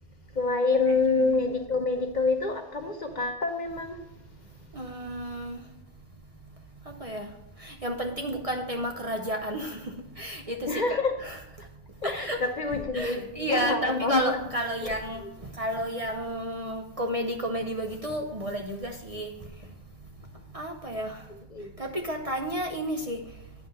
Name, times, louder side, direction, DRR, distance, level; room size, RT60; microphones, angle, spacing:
voice 1, 0.4-4.0 10.7-11.1 12.0-14.2 21.5-21.7, left 3 dB, 45° left, 5 dB, 0.9 m, -27 dB
voice 2, 0.9-1.3 4.8-5.6 7.0-7.3 7.6-9.8 10.2-11.4 12.0-12.4 12.9-15.2 15.6-19.3 20.5-21.2 21.8-23.2, equal, 35° right, 3 dB, 0.7 m, -31 dB
9.4 x 5.6 x 5.3 m, 0.89 s
omnidirectional pair, 1.2 m